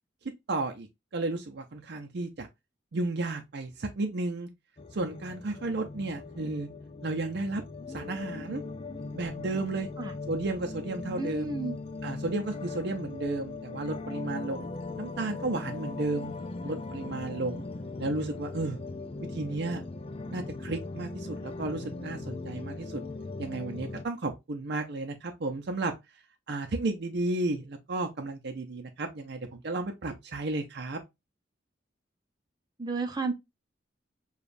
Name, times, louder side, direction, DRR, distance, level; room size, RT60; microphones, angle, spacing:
voice 1, 0.5-0.9 1.1-2.5 2.9-4.5 4.9-6.7 7.0-7.6 7.9-8.6 9.1-9.9 10.3-11.6 12.0-14.7 15.0-16.3 16.6-17.6 18.0-18.8 19.3-19.8 20.3-23.0 23.4-25.9 26.5-31.0, right 2 dB, 60° right, 0.6 m, -33 dB
sound 1, 4.8-24.1, left 3 dB, 30° left, 0.5 m, -39 dB
voice 2, 11.2-11.8 32.8-33.3, right 3 dB, 20° right, 0.7 m, -32 dB
6.9 x 2.4 x 2.6 m
head